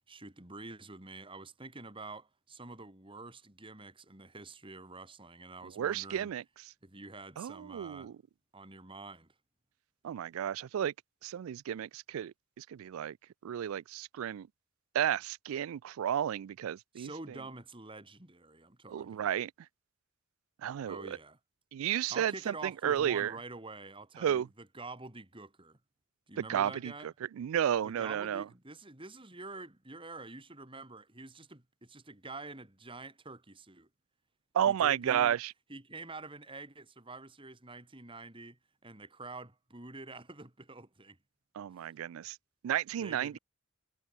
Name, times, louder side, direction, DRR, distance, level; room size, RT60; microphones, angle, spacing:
voice 1, 0.1-6.3 6.8-8.1 8.5-9.3 16.9-19.3 20.8-21.4 22.1-25.8 26.3-27.1 27.8-33.9 34.6-35.4 35.7-41.2 41.8-41.9 43.0-43.4, right 3 dB, 25° right, 2.8 m, -47 dB
voice 2, 5.6-6.4 7.4-8.2 10.0-10.9 11.2-13.2 13.4-14.5 14.9-17.1 18.9-19.5 20.6-21.2 21.7-23.3 24.2-24.5 26.4-26.9 27.4-28.4 34.5-35.5 41.6-42.4 42.6-43.4, right 9 dB, 75° right, 0.3 m, -32 dB
head